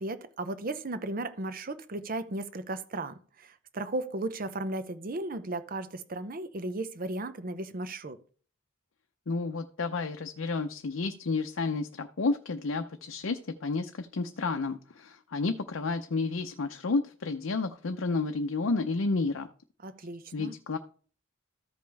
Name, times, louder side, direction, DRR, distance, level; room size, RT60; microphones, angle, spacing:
voice 1, 0.0-8.2 19.8-20.5, right 2 dB, 45° right, 0.7 m, -35 dB
voice 2, 9.3-19.5 20.3-20.8, left 3 dB, 70° left, 0.6 m, -31 dB
14.0 x 5.2 x 3.4 m
head